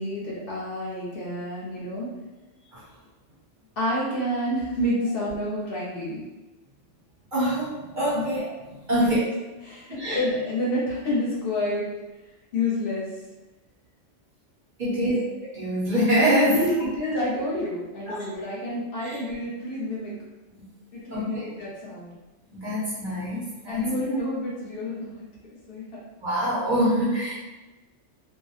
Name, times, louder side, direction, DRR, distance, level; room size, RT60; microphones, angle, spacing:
voice 1, 0.0-2.2 3.8-6.2 8.1-8.2 9.0-9.2 9.6-11.9 12.5-13.1 14.8-15.2 16.5-20.1 20.9-22.1 23.7-26.0, left 1 dB, 55° left, -6 dB, 0.8 m, -29 dB
voice 2, 7.3-9.2 9.9-10.2 14.8-16.7 18.1-18.2 19.0-19.2 21.1-21.5 22.5-23.8 26.2-27.3, equal, 55° right, -7 dB, 0.6 m, -25 dB
2.3 x 2.0 x 2.7 m, 1.1 s
omnidirectional pair, 1.2 m